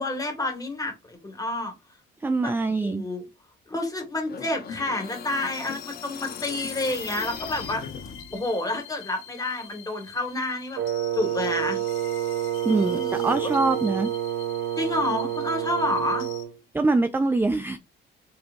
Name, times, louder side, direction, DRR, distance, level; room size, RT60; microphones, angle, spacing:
voice 1, 0.0-1.7 2.4-2.5 2.8-3.3 3.7-7.8 8.3-10.8 11.1-11.8 12.7-13.5 14.8-16.2, left 2 dB, 15° left, 1.8 m, -29 dB
voice 2, 2.2-3.0 12.6-14.1 16.7-17.8, right 3 dB, 10° right, 0.4 m, -23 dB
sound 1, 4.2-8.5, left 6 dB, 50° left, 0.8 m, -39 dB
sound 2, 4.7-16.4, left 9 dB, 85° left, 1.1 m, -46 dB
Wind instrument woodwind instrument, 10.8-16.5, right 11 dB, 65° right, 0.6 m, -28 dB
4.4 x 3.9 x 2.6 m
cardioid pair, 90°, 20 cm